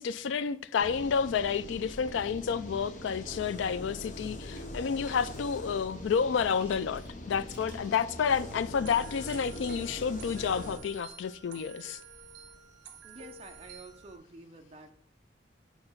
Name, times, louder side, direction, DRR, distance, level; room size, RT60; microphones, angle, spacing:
voice 1, 0.0-12.0, left 6 dB, 80° left, 0.3 m, -30 dB
sound 1, 0.8-10.8, left 1 dB, 40° left, 0.9 m, -43 dB
Chewing mastication, 3.6-10.5, right 1 dB, 5° right, 1.8 m, -55 dB
sound 2, 8.8-14.2, right 4 dB, 70° right, 1.0 m, -50 dB
voice 2, 13.0-14.9, right 2 dB, 30° right, 0.7 m, -49 dB
8.7 x 2.9 x 5.6 m
head